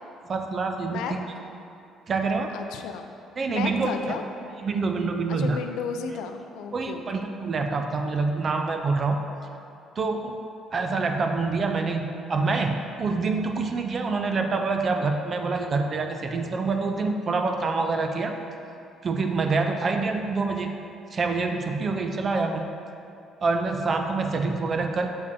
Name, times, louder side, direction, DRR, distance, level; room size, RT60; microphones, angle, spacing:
voice 1, 0.3-1.3 2.1-2.5 3.4-4.2 4.6-5.6 6.7-9.2 10.0-10.4 10.7-18.3 19.0-20.7 21.1-22.6 23.4-25.1, right 4 dB, 35° right, 4 dB, 0.4 m, -26 dB
voice 2, 2.5-3.0 3.5-4.2 5.3-7.2, left 6 dB, 85° left, 6 dB, 0.4 m, -33 dB
6.7 x 5.3 x 2.7 m, 2.6 s
cardioid pair, 135°, 0 cm